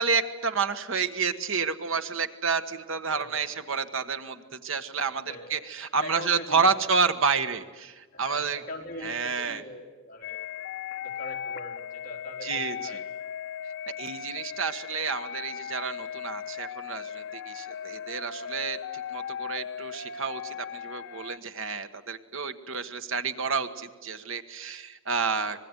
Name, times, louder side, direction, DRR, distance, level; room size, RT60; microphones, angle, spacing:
voice 1, 0.0-8.6 9.0-9.6 12.4-13.0 14.0-25.6, right 5 dB, 65° right, 9 dB, 1.5 m, -29 dB
voice 2, 3.1-3.5 5.3-5.6 6.0-6.7 8.1-10.5 11.0-13.0, left 1 dB, 40° left, 0 dB, 4.1 m, -42 dB
sound 1, 10.2-21.4, left 8 dB, 60° left, 0.9 m, -37 dB
25.0 x 21.0 x 9.7 m, 1.3 s
head